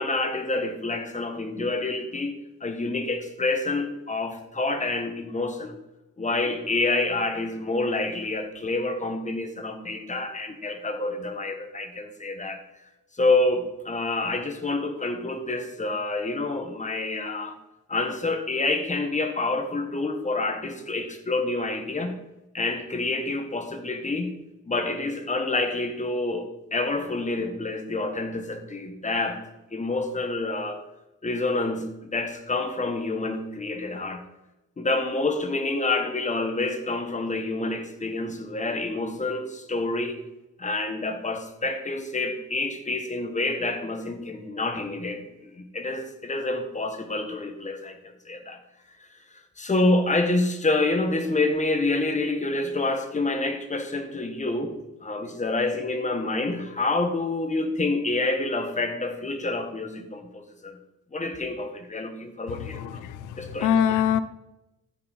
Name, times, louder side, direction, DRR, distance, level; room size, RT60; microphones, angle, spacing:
voice 1, 0.0-5.7 6.2-12.6 13.1-17.6 17.9-22.2 22.5-24.4 24.7-29.4 29.7-30.8 31.2-34.3 34.8-40.2 40.6-45.3 45.6-48.6 49.6-54.7 55.0-60.8 61.1-63.1 63.4-63.8, left 2 dB, 25° left, 7 dB, 1.4 m, -28 dB
voice 2, 62.7-63.3 63.6-64.2, left 9 dB, 90° left, 14 dB, 0.7 m, -23 dB
14.0 x 6.1 x 4.2 m, 0.94 s
cardioid pair, 90°, 30 cm